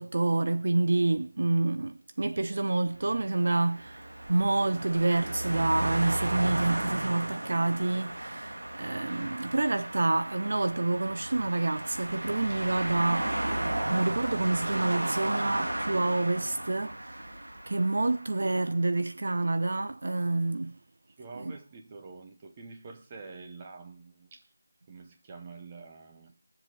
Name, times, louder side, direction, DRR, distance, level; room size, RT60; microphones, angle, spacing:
voice 1, 0.0-13.4 13.9-17.4 17.7-20.8 21.3-21.6, right 2 dB, 45° right, 0.5 m, -28 dB
sound 1, 3.0-18.4, right 1 dB, 65° right, 2.7 m, -34 dB
voice 2, 21.1-24.5 24.9-26.4, right 4 dB, 15° right, 0.9 m, -47 dB
19.5 x 7.5 x 4.9 m
figure-of-eight pair, 175°, 0 cm